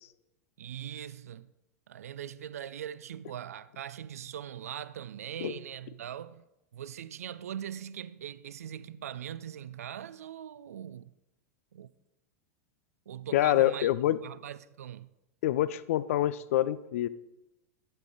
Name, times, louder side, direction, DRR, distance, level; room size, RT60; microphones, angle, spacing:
voice 1, 0.6-1.5 1.9-6.4 6.7-11.1 11.7-11.9 13.1-13.9 14.2-15.1, right 10 dB, 75° right, 0.4 m, -41 dB
voice 2, 13.3-14.2 15.4-17.1, left 13 dB, 60° left, 0.4 m, -26 dB
12.5 x 8.3 x 3.9 m
figure-of-eight pair, 90°, 8 cm